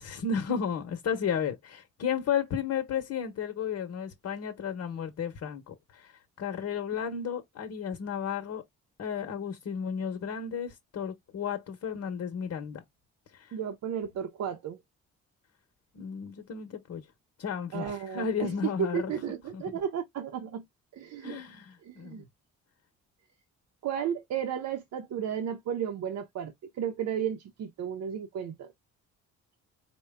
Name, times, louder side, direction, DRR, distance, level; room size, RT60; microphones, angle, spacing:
voice 1, 0.0-8.6 9.0-12.8 13.3-13.5 15.9-17.1 17.4-19.1 19.5-19.6 21.2-22.3, left 7 dB, 60° left, 1.0 m, -33 dB
voice 2, 13.5-14.8 17.7-20.7 20.9-21.4 21.8-22.2 23.8-28.7, right 8 dB, 65° right, 0.8 m, -33 dB
4.4 x 2.2 x 3.4 m
cardioid pair, 90°, 30 cm